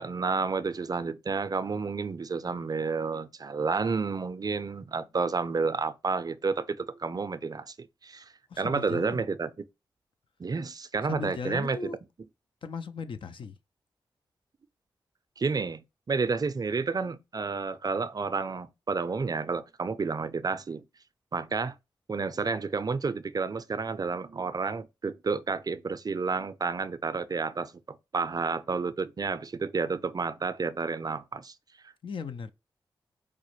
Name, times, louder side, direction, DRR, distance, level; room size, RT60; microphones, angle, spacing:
voice 1, 0.0-8.3 8.6-9.5 10.4-11.9 15.4-20.8 21.3-21.7 22.1-31.5, right 4 dB, 45° right, 0.5 m, -30 dB
voice 2, 8.5-9.2 11.0-12.0 12.6-13.6 32.0-32.5, left 5 dB, 65° left, 0.5 m, -37 dB
4.8 x 2.1 x 3.1 m
supercardioid pair, 40°, 9 cm